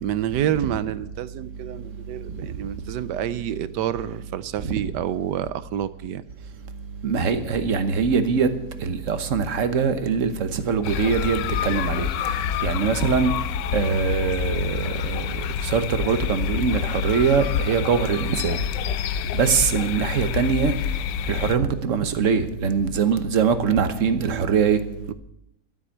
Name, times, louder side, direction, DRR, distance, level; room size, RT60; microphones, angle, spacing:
voice 1, 0.0-6.2 24.3-24.5 25.1-25.2, right 11 dB, 75° right, 1.2 m, -28 dB
voice 2, 7.0-8.5 8.8-12.1 12.6-13.3 13.7-15.2 15.6-18.6 19.3-20.7 21.3-24.8, right 6 dB, 50° right, 1.2 m, -22 dB
sound 1, 10.8-21.6, left 10 dB, 75° left, 1.2 m, -27 dB
12.5 x 7.8 x 8.5 m
omnidirectional pair, 1.9 m